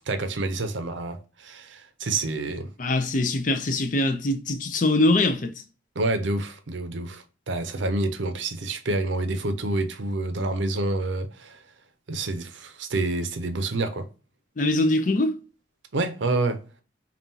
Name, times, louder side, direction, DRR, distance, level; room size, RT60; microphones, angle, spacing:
voice 1, 0.1-2.7 6.0-11.6 12.1-14.1 15.9-16.6, right 2 dB, 70° right, 0.7 m, -28 dB
voice 2, 2.8-5.5 14.6-15.4, left 2 dB, 40° left, 0.5 m, -23 dB
5.4 x 2.4 x 2.7 m
head